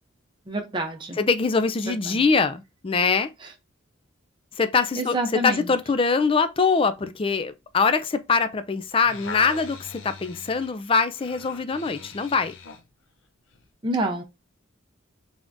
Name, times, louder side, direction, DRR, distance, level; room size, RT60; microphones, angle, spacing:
voice 1, 0.5-1.2 1.9-2.2 3.4-3.5 5.0-5.7 13.8-14.2, right 1 dB, 25° right, 0.6 m, -28 dB
voice 2, 1.2-3.3 4.6-5.2 5.4-12.5, left 4 dB, 25° left, 0.4 m, -23 dB
sound 1, 8.8-12.9 13.5-13.6, left 4 dB, 70° left, 0.6 m, -41 dB
3.6 x 3.4 x 2.6 m
head